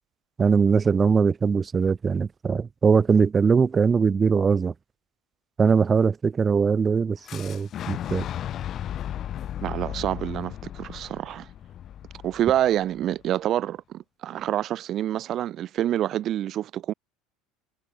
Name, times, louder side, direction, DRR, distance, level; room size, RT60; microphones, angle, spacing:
voice 1, 0.4-4.7 5.6-8.2, right 5 dB, 25° right, 1.0 m, -21 dB
Fire / Explosion, 7.3-13.1, left 11 dB, 45° left, 2.4 m, -35 dB
voice 2, 9.6-11.5 12.2-16.9, right 12 dB, 50° right, 0.5 m, -27 dB
supercardioid pair, 100°, 0 cm